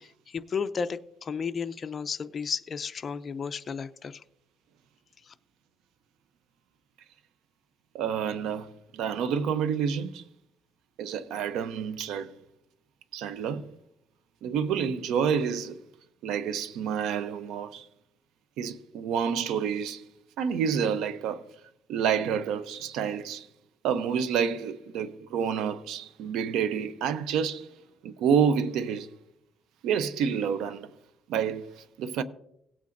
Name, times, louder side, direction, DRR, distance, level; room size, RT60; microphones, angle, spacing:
voice 1, 0.0-4.2 5.3-5.4, left 6 dB, 40° left, 0.5 m, -33 dB
voice 2, 7.9-10.2 11.0-12.3 13.1-13.7 14.4-15.8 16.2-17.9 18.6-20.0 20.4-21.4 21.9-23.5 23.8-27.7 28.0-29.1 29.8-30.9 31.3-32.2, right 7 dB, 90° right, 0.7 m, -28 dB
17.5 x 8.6 x 2.6 m
cardioid pair, 110°, 0 cm